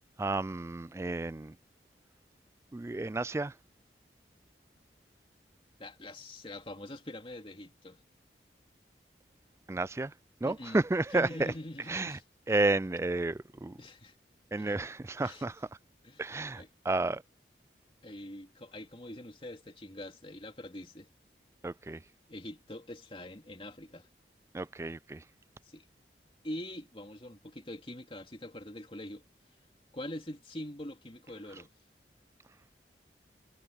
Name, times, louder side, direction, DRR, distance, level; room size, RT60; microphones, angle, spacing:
voice 1, 0.2-1.5 2.7-3.5 9.7-10.1 10.4-11.3 11.9-12.1 12.5-13.8 14.5-15.5 16.2-17.2 21.6-22.0 24.5-25.2, right 2 dB, 15° right, 0.3 m, -31 dB
voice 2, 5.8-8.0 10.4-12.2 13.8-14.1 14.6-14.8 15.2-15.5 16.0-16.7 18.0-21.1 22.3-24.1 25.6-25.8 26.4-29.2 29.9-31.7, left 1 dB, 30° left, 2.8 m, -44 dB
head